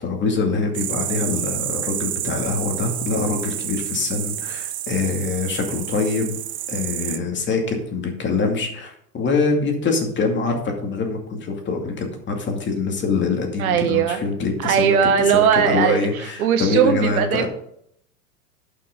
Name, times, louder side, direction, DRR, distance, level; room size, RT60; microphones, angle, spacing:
voice 1, 0.0-6.4 6.7-17.5, left 4 dB, 25° left, 3 dB, 2.4 m, -24 dB
sound 1, 0.7-7.2, right 13 dB, 20° right, 0.4 m, -29 dB
voice 2, 13.6-14.2 14.6-17.5, right 8 dB, 65° right, 8 dB, 1.4 m, -19 dB
11.0 x 6.0 x 5.2 m, 0.71 s
hypercardioid pair, 100°, 46 cm